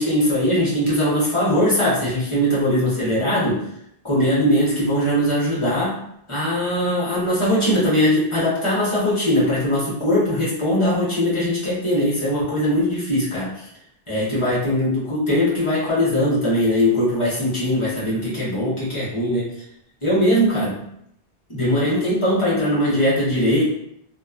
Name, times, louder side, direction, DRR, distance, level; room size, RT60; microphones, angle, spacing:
voice 1, 0.0-3.6 4.0-6.0 6.3-13.7 14.1-19.5 20.0-20.8 21.5-23.6, equal, 30° left, -8 dB, 1.0 m, -20 dB
2.8 x 2.2 x 2.3 m, 0.73 s
omnidirectional pair, 1.0 m